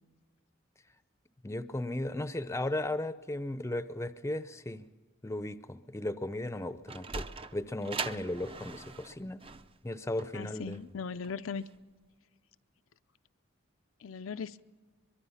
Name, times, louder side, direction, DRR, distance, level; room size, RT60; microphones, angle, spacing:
voice 1, 1.4-4.9 5.2-7.2 7.5-9.4 9.8-10.8, left 1 dB, 15° left, 13 dB, 0.6 m, -36 dB
Sliding door, 6.6-11.8, right 4 dB, 30° right, 0.6 m, -41 dB
voice 2, 10.3-11.6 14.0-14.6, left 5 dB, 80° left, 10 dB, 0.5 m, -38 dB
23.5 x 22.5 x 5.7 m, 1.4 s
head